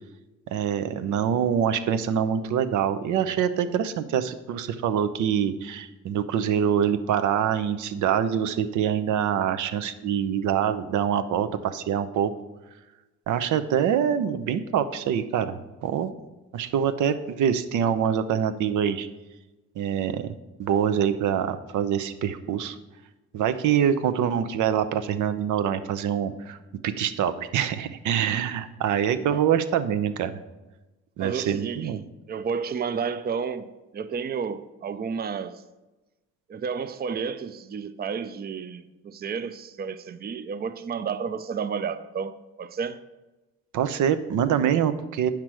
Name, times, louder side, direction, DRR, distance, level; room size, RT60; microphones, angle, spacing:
voice 1, 0.5-12.3 13.3-16.1 16.5-19.1 19.8-20.3 20.6-22.8 23.3-26.6 26.8-30.4 31.2-32.0 43.7-45.3, right 8 dB, 80° right, 0.7 m, -25 dB
voice 2, 31.2-32.0 32.3-35.6 36.5-43.0, right 6 dB, 35° right, 0.5 m, -31 dB
8.9 x 5.9 x 4.6 m
cardioid pair, 90°, 30 cm